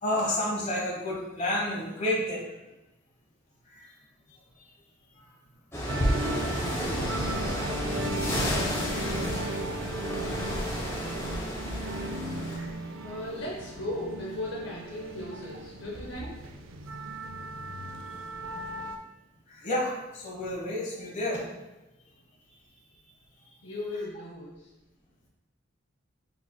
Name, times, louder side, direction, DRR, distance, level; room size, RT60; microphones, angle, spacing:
voice 1, 0.0-2.4 3.7-3.9 5.2-5.3 6.7-7.6 8.3-8.4 9.0-9.3 12.4-12.7 19.5-21.4, left 1 dB, 40° left, -4 dB, 1.1 m, -31 dB
sound 1, 5.7-12.6, equal, 15° left, 0.8 m, -31 dB
sound 2, 5.9-19.0, right 1 dB, 90° right, 0.4 m, -36 dB
voice 2, 13.0-16.4 23.6-24.7, left 1 dB, 70° left, -3 dB, 0.7 m, -37 dB
4.4 x 3.9 x 2.2 m, 1.0 s
head